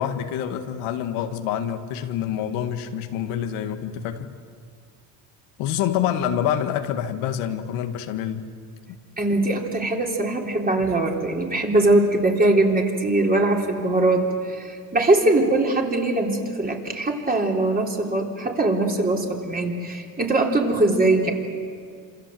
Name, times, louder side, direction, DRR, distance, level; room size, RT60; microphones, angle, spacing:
voice 1, 0.0-4.3 5.6-8.5, left 9 dB, 75° left, 6 dB, 2.0 m, -26 dB
voice 2, 9.2-21.3, right 2 dB, 15° right, 1 dB, 3.7 m, -21 dB
27.5 x 27.0 x 7.8 m, 2.1 s
cardioid pair, 125°, 50 cm